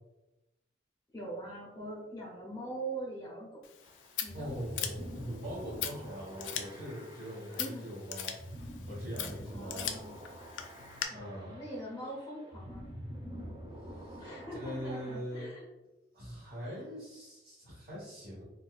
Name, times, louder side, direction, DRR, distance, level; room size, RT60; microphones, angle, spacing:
voice 1, 1.1-3.6 4.2-4.5 7.5-7.9 9.5-10.2 11.1-12.9 14.2-15.7 16.6-16.8, right 1 dB, 15° left, -5 dB, 0.6 m, -42 dB
Scissors, 3.6-11.0, left 9 dB, 90° left, 0.4 m, -41 dB
sound 1, 3.8-15.2, equal, 25° right, 0.5 m, -47 dB
voice 2, 4.3-8.3 8.9-9.9 11.1-11.6 13.8-14.3 14.5-15.5 16.1-18.4, equal, 55° right, -11 dB, 1.3 m, -42 dB
4.0 x 2.2 x 2.4 m, 0.98 s
head